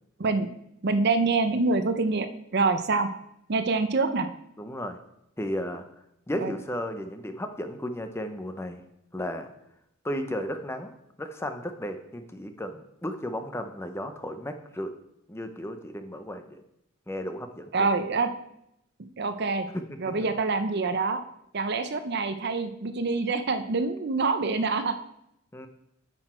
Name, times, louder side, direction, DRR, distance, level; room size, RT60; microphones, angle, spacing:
voice 1, 0.8-3.1 3.5-4.3 6.4-6.5 17.7-18.3 19.2-19.7 20.0-21.2 21.5-24.9, right 3 dB, 50° right, 10 dB, 0.6 m, -26 dB
voice 2, 4.6-5.0 5.4-5.8 6.3-8.8 9.1-9.5 10.0-10.9 11.2-14.9 15.3-16.6 17.1-17.9 19.7-20.3 25.5-25.7, equal, 10° left, 7 dB, 0.6 m, -34 dB
8.9 x 6.1 x 4.4 m, 0.79 s
head